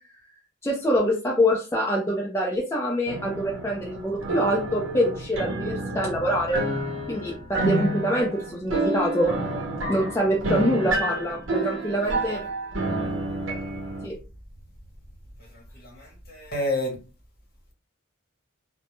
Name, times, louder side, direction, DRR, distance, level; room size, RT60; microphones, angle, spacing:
voice 1, 0.6-6.6 7.1-9.4 9.9-12.4 14.0-14.2, equal, 15° left, -2 dB, 0.3 m, -25 dB
sound 1, 3.1-14.1, right 1 dB, 70° right, 0.6 m, -29 dB
voice 2, 15.5-17.0, left 1 dB, 45° left, 0 dB, 0.9 m, -30 dB
2.1 x 2.0 x 2.9 m, 0.33 s
head